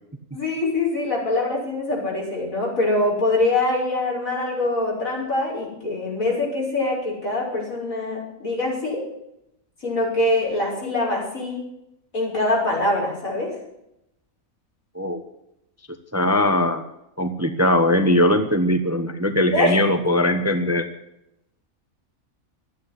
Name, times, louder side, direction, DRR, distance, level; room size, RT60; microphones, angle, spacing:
voice 1, 0.3-9.0 9.8-11.6 12.1-13.6 19.5-19.8, left 2 dB, 70° left, -3 dB, 7.0 m, -24 dB
voice 2, 16.1-16.8 17.2-20.9, left 1 dB, 10° right, 7 dB, 1.0 m, -20 dB
14.0 x 9.9 x 9.9 m, 0.82 s
omnidirectional pair, 1.5 m